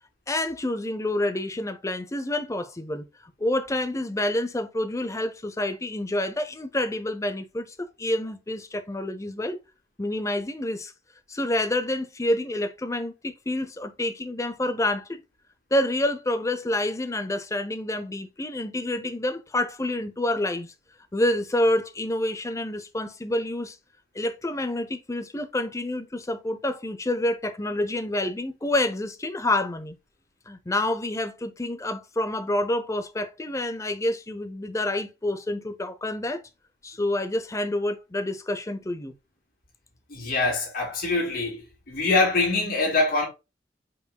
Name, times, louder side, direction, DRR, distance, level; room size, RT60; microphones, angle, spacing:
voice 1, 0.3-3.1 3.4-9.6 10.0-10.9 11.3-15.2 15.7-20.7 21.1-23.8 24.1-30.0 30.5-36.4 36.8-39.1, left 1 dB, 20° left, 0.6 m, -28 dB
voice 2, 40.1-41.6 41.9-43.3, left 3 dB, 55° left, 2.6 m, -24 dB
5.3 x 4.5 x 2.3 m
head